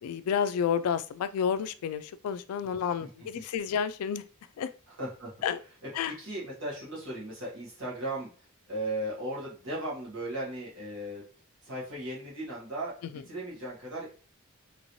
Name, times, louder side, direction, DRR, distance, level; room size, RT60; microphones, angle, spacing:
voice 1, 0.0-4.2 4.6-4.7 5.4-5.6 5.9-6.1, left 7 dB, 85° left, 15 dB, 0.3 m, -30 dB
voice 2, 4.9-5.3 6.2-11.3 11.6-14.1, right 1 dB, 60° right, -6 dB, 1.4 m, -37 dB
3.0 x 3.0 x 2.6 m, 0.38 s
head